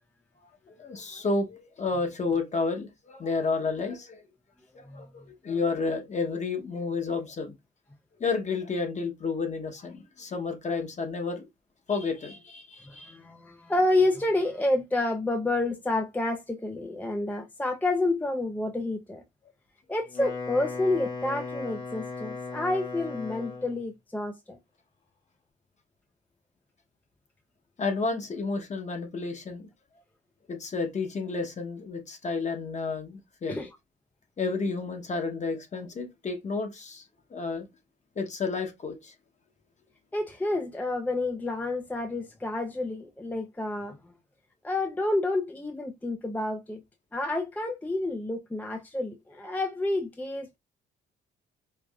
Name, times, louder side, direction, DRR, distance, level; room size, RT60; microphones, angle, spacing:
voice 1, 0.7-4.2 4.7-7.6 8.2-11.5 11.9-13.2 27.8-29.7 30.5-33.6 34.4-37.0 37.3-37.7 38.2-39.1, left 4 dB, 35° left, 1.0 m, -31 dB
voice 2, 12.9-19.2 19.9-24.6 33.5-33.7 40.1-44.0 44.6-46.8 47.1-50.6, left 2 dB, 10° left, 0.4 m, -29 dB
Wind instrument woodwind instrument, 20.0-23.9, left 4 dB, 75° left, 1.8 m, -37 dB
4.6 x 2.4 x 2.3 m
cardioid pair, 90°, 20 cm